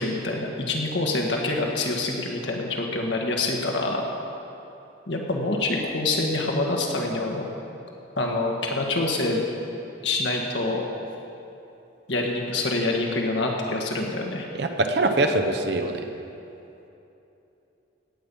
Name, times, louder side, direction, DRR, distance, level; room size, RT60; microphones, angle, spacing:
voice 1, 0.0-4.0 5.1-7.4 8.2-9.4 10.0-10.8 12.1-14.5, left 2 dB, 70° left, 0 dB, 1.6 m, -26 dB
voice 2, 14.6-16.0, right 2 dB, 60° right, 5 dB, 0.9 m, -23 dB
17.5 x 8.6 x 5.5 m, 2.9 s
head